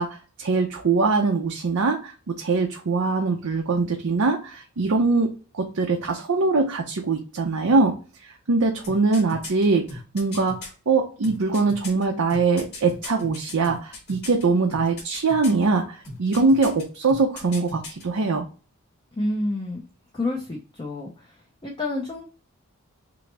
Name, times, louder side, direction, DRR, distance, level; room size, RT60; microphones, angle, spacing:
voice 1, 0.0-7.9 8.2-10.6 10.9-18.5, right 3 dB, 75° right, 2 dB, 0.6 m, -22 dB
sound 1, 8.8-10.7 11.2-14.4 14.7-15.6 16.0-16.8 17.1-18.0 18.3-18.4, left 2 dB, 45° left, 2.3 m, -38 dB
voice 2, 19.2-19.8 20.1-21.4 21.6-22.2, left 2 dB, 20° left, -1 dB, 0.6 m, -29 dB
6.0 x 2.1 x 3.3 m, 0.36 s
head